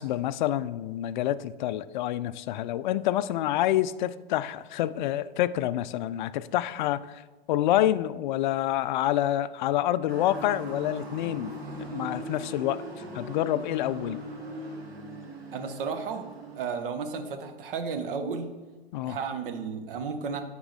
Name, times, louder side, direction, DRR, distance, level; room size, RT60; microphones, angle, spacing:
voice 1, 0.0-7.2 7.5-12.8 13.1-14.2 18.9-19.2, left 13 dB, 50° left, 16 dB, 0.4 m, -27 dB
Motor vehicle (road) / Siren, 10.1-16.8, equal, 80° right, 1.8 m, -42 dB
sound 1, 10.3-16.6, right 4 dB, 20° right, 0.7 m, -44 dB
voice 2, 15.5-16.2 16.6-18.5 19.1-20.4, right 5 dB, 60° right, 7 dB, 1.1 m, -33 dB
9.9 x 3.7 x 4.7 m, 1.2 s
hypercardioid pair, 110°, 30 cm